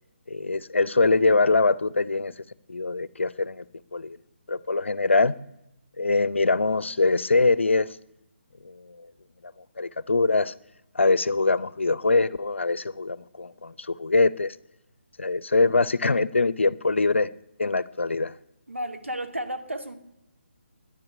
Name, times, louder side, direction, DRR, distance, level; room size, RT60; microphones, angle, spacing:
voice 1, 0.3-2.3 2.7-3.6 3.9-4.2 4.5-5.4 6.0-8.0 8.6-9.1 9.8-10.5 10.9-14.6 15.2-17.3 17.6-18.3, left 3 dB, 75° left, 0.7 m, -23 dB
voice 2, 18.7-20.0, right 1 dB, 90° right, 2.3 m, -32 dB
10.5 x 10.5 x 9.7 m
figure-of-eight pair, 145°, 7 cm